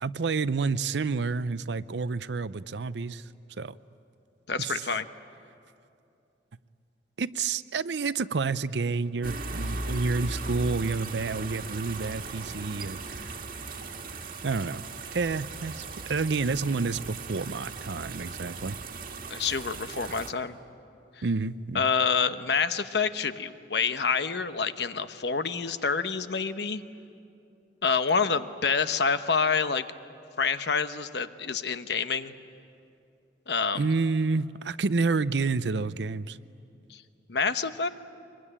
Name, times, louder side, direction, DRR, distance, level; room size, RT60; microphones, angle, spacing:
voice 1, 0.0-3.3 3.6-3.7 4.6-4.8 7.2-13.3 14.4-14.8 15.1-18.8 21.2-21.9 33.7-36.4, right 4 dB, 75° right, 16 dB, 0.6 m, -29 dB
voice 2, 4.5-5.0 19.3-20.5 21.7-26.8 27.8-29.8 30.4-32.3 33.5-33.8 36.9-37.0 37.3-37.9, left 5 dB, 65° left, 10 dB, 1.0 m, -27 dB
sound 1, 9.2-20.3, right 3 dB, 55° right, 1.7 m, -38 dB
24.5 x 23.0 x 10.0 m, 2.6 s
head